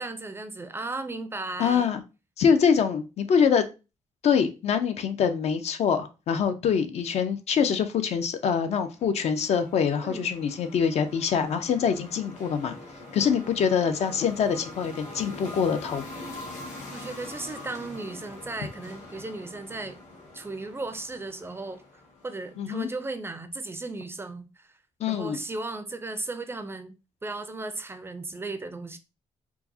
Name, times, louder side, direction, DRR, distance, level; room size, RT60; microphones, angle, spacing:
voice 1, 0.0-2.0 10.0-10.3 13.2-13.6 16.9-20.0 20.3-21.8 22.2-24.8 25.1-26.9 27.2-29.0, right 2 dB, 20° right, 0.4 m, -36 dB
voice 2, 1.6-2.0 2.4-3.7 4.2-12.8 13.1-16.0 22.6-22.9 25.0-25.4, left 7 dB, 60° left, 0.5 m, -24 dB
sound 1, 8.5-22.9, left 2 dB, 75° left, 2.0 m, -44 dB
4.5 x 2.0 x 2.7 m
cardioid pair, 125°, 13 cm